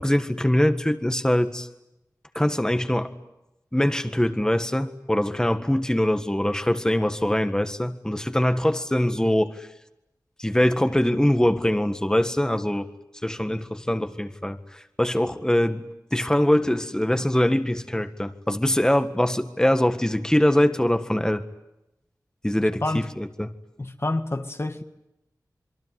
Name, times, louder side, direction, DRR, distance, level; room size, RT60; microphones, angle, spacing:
voice 1, 0.0-1.7 2.4-3.1 3.7-9.7 10.4-12.9 13.2-15.9 16.1-21.4 22.4-23.5, left 1 dB, 10° left, 1.7 m, -23 dB
voice 2, 23.8-24.8, left 2 dB, 40° left, 1.8 m, -28 dB
27.0 x 22.5 x 9.6 m
wide cardioid pair, 45°, 7 cm